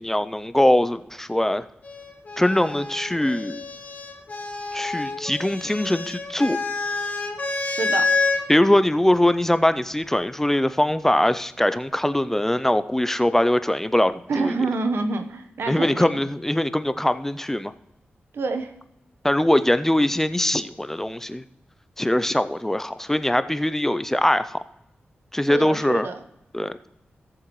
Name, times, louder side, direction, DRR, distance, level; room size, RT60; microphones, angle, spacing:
voice 1, 0.0-1.6 2.4-3.6 4.7-6.6 8.5-14.5 15.7-17.7 19.2-21.4 22.0-24.6 25.3-26.1 26.5-26.7, left 1 dB, 10° left, 13 dB, 0.4 m, -22 dB
sound 1, 1.8-8.4 9.6-10.2, left 3 dB, 40° left, 1.2 m, -28 dB
voice 2, 7.6-8.1 14.3-16.1 18.3-18.7 25.5-26.2, right 3 dB, 85° right, 7 dB, 1.0 m, -27 dB
16.5 x 7.4 x 3.1 m, 0.84 s
wide cardioid pair, 105°, 4 cm